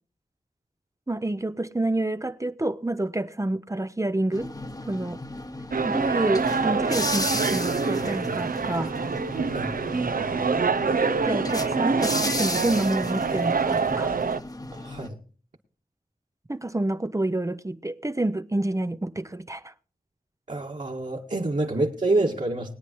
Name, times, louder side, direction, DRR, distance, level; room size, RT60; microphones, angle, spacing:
voice 1, 1.1-4.5 4.9-5.2 5.8-8.9 11.0-14.1 16.5-19.7 21.8-21.9, right 2 dB, 20° right, 0.7 m, -28 dB
sound 1, 4.3-15.1, left 2 dB, 25° left, 1.0 m, -34 dB
sound 2, 5.7-14.4, right 5 dB, 75° right, 0.7 m, -26 dB
voice 2, 14.7-15.2 20.5-22.7, right 2 dB, 55° right, 1.9 m, -27 dB
21.0 x 9.8 x 3.1 m
wide cardioid pair, 50°, 15 cm